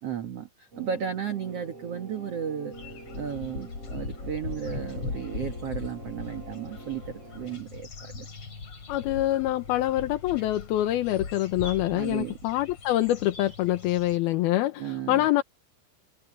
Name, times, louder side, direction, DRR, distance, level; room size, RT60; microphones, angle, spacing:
voice 1, 0.0-2.8 3.1-8.3 11.9-12.4 14.8-15.2, right 8 dB, 65° right, 1.5 m, -34 dB
sound 1, 0.7-7.6, right 3 dB, 35° right, 6.9 m, -45 dB
sound 2, 2.7-14.2, left 4 dB, 35° left, 3.7 m, -40 dB
voice 2, 8.9-15.4, left 14 dB, 70° left, 2.6 m, -25 dB
omnidirectional pair, 5.1 m